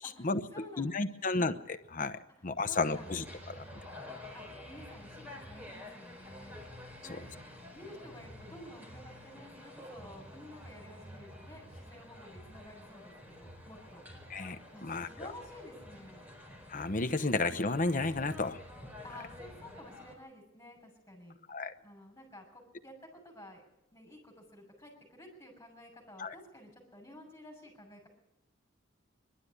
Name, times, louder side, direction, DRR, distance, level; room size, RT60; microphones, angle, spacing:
voice 1, 0.0-1.3 2.4-3.1 4.3-6.6 7.0-7.3 7.7-14.0 14.4-16.3 19.0-21.4 21.8-23.6 23.9-28.1, left 1 dB, 15° left, 0 dB, 6.4 m, -52 dB
voice 2, 0.8-2.2 2.4-3.2 14.3-14.6 14.8-15.1 16.7-18.6 21.5-21.7 26.2-26.3, left 3 dB, 40° left, 9 dB, 1.0 m, -32 dB
sound 1, 2.9-20.2, left 1 dB, 10° right, 4.5 m, -49 dB
21.5 x 12.5 x 9.8 m, 0.88 s
head